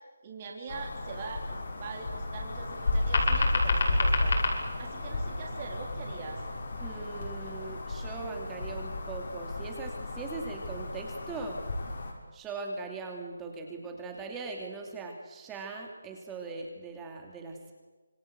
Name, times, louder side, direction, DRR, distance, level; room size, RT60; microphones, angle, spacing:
voice 1, 0.2-4.4 4.8-6.4, right 4 dB, 25° right, 0 dB, 4.1 m, -42 dB
sound 1, 0.7-12.1, left 2 dB, 50° left, 6.4 m, -31 dB
sound 2, 2.5-7.5, right 2 dB, 90° right, 7.5 m, -49 dB
voice 2, 6.8-11.6 12.3-17.7, right 4 dB, 10° right, 2 dB, 2.7 m, -40 dB
26.5 x 24.5 x 8.0 m, 1.3 s
hypercardioid pair, 175°, 0 cm